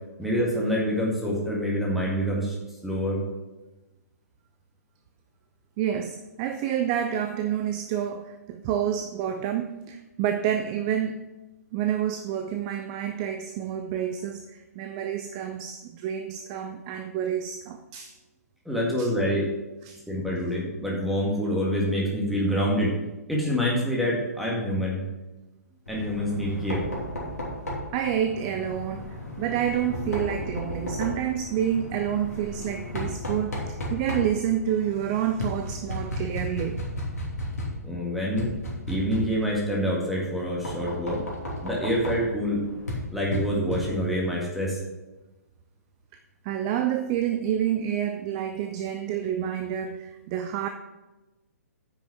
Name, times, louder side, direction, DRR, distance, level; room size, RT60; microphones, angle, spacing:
voice 1, 0.2-2.6 2.8-3.2 18.7-19.5 20.1-22.9 23.3-25.0 25.9-26.8 37.8-38.6 38.9-41.2 41.6-42.6 43.1-44.8, equal, ahead, -3 dB, 2.0 m, -26 dB
voice 2, 5.8-11.3 11.7-18.1 19.0-19.1 19.8-20.0 27.9-36.8 46.4-50.7, right 9 dB, 25° right, 8 dB, 0.5 m, -28 dB
Knock, 25.9-44.3, left 1 dB, 70° left, 2.9 m, -35 dB
9.6 x 6.1 x 5.9 m, 1.1 s
figure-of-eight pair, 125°, 9 cm